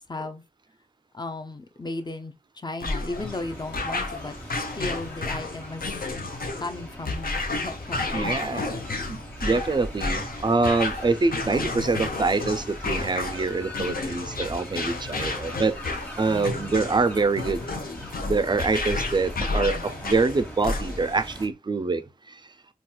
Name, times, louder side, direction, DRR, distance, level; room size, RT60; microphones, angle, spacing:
voice 1, 0.1-0.4 1.1-2.3 2.6-4.4 4.7-5.8 6.6-8.7 16.3-16.8, left 2 dB, 30° left, 0.5 m, -35 dB
sound 1, 2.8-21.2, left 3 dB, 75° left, 0.7 m, -31 dB
sound 2, 3.1-21.5, equal, 10° left, 1.1 m, -42 dB
voice 2, 8.1-15.7 16.2-17.7 18.2-22.0 22.3-22.4, right 3 dB, 30° right, 0.3 m, -25 dB
4.1 x 2.3 x 2.2 m
wide cardioid pair, 80°, 15 cm